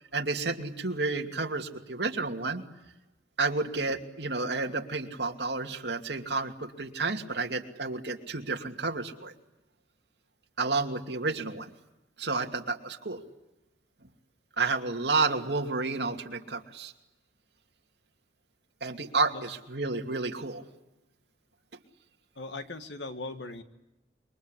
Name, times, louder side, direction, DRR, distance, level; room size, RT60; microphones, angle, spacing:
voice 1, 0.1-2.6 3.4-9.3 10.6-11.7 12.2-13.2 14.6-16.9 18.8-20.6, right 3 dB, 70° right, 3 dB, 2.7 m, -31 dB
voice 2, 22.4-23.6, left 2 dB, 85° left, 8 dB, 2.0 m, -39 dB
27.5 x 23.5 x 8.3 m, 0.98 s
head